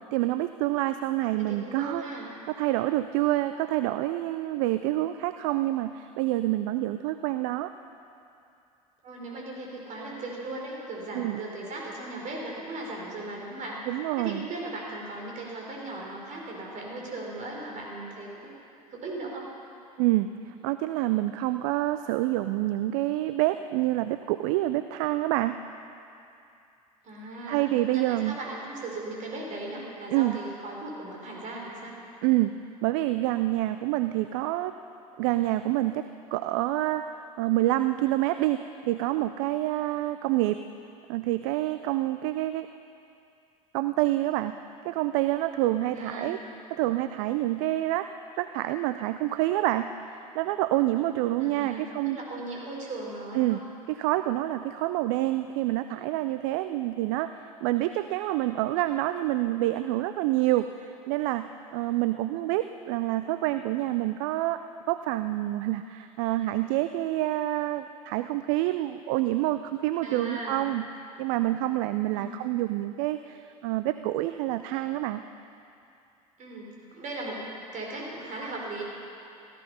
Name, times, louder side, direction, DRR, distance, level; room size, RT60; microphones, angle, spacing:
voice 1, 0.1-2.0 2.5-7.7 11.1-11.4 13.9-14.5 20.0-25.6 27.5-28.4 30.1-30.4 32.2-32.5 32.8-34.7 35.2-36.0 36.3-40.6 41.1-42.7 43.7-44.6 44.8-46.4 46.7-48.1 48.4-49.9 50.3-52.2 53.3-53.6 53.9-70.9 71.2-75.2, right 16 dB, 60° right, 11 dB, 0.5 m, -27 dB
voice 2, 1.2-2.3 9.0-13.8 14.2-18.5 18.9-19.5 27.0-27.7 27.9-31.9 45.9-46.4 51.4-53.6 70.0-70.6 72.1-72.4 76.4-77.4 77.7-78.8, right 2 dB, 45° right, -2 dB, 4.1 m, -37 dB
17.0 x 13.0 x 5.6 m, 2.6 s
figure-of-eight pair, 65°, 18 cm